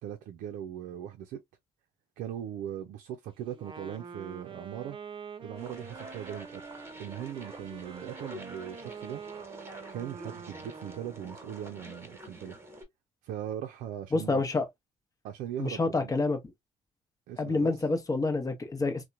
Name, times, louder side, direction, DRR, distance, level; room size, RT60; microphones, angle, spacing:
voice 1, 0.0-1.4 2.2-5.0 5.4-6.6 7.0-9.2 9.9-12.6 13.2-14.5 15.2-16.1 17.3-17.8, right 10 dB, 80° right, 0.4 m, -39 dB
Wind instrument woodwind instrument, 3.5-11.5, right 5 dB, 40° right, 0.6 m, -46 dB
sound 1, 5.6-12.8, right 1 dB, 20° right, 1.1 m, -47 dB
voice 2, 14.1-14.7 15.6-16.4 17.4-19.1, left 3 dB, 25° left, 0.8 m, -28 dB
2.9 x 2.1 x 2.4 m
supercardioid pair, 80°, 14 cm